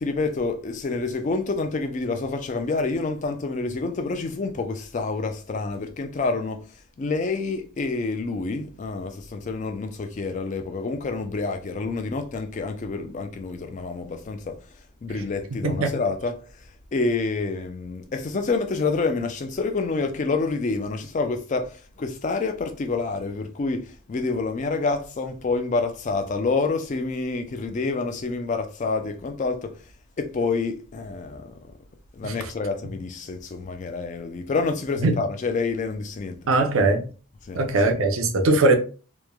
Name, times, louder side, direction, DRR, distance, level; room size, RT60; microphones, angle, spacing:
voice 1, 0.0-6.6 7.0-14.6 15.0-29.8 30.2-31.5 32.1-36.4 37.4-37.6, left 3 dB, 35° left, 0.3 m, -28 dB
voice 2, 15.5-15.9 32.2-32.3 35.0-35.1 36.5-37.0 37.5-38.7, right 2 dB, 65° right, 0.5 m, -20 dB
3.0 x 2.1 x 2.2 m
head